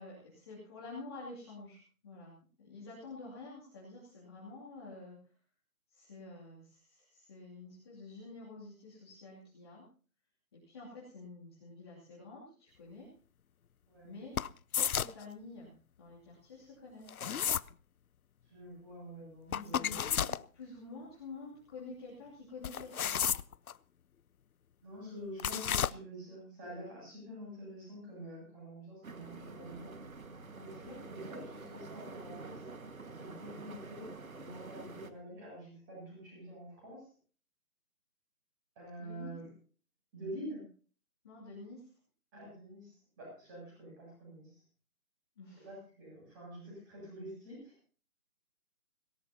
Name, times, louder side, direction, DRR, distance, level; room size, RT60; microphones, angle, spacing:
voice 1, 0.0-5.2 5.9-9.9 10.5-13.1 14.0-14.4 14.7-17.3 19.5-20.3 20.5-23.2 39.0-39.3 41.2-41.9 45.4-45.7, left 3 dB, 15° left, -7 dB, 2.7 m, -49 dB
sound 1, 14.4-15.2 17.1-17.7 19.5-20.4 22.6-23.7 25.4-25.9, left 8 dB, 75° left, 0.6 m, -32 dB
voice 2, 18.5-20.2 24.8-29.9 30.6-32.6 33.1-37.1 38.8-39.5 40.1-40.6 42.3-44.6 45.6-47.8, equal, 15° right, -3 dB, 7.8 m, -47 dB
sound 2, 29.0-35.1, right 3 dB, 65° right, 1.9 m, -47 dB
19.0 x 17.5 x 2.9 m, 0.40 s
figure-of-eight pair, 170°, 43 cm